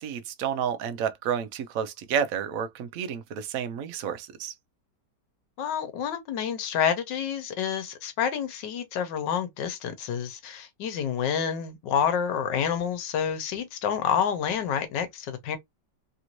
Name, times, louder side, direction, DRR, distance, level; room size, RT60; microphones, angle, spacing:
voice 1, 0.0-4.5, right 8 dB, 65° right, 0.9 m, -30 dB
voice 2, 5.6-15.6, left 8 dB, 80° left, 1.5 m, -28 dB
3.4 x 2.5 x 2.9 m
omnidirectional pair, 1.9 m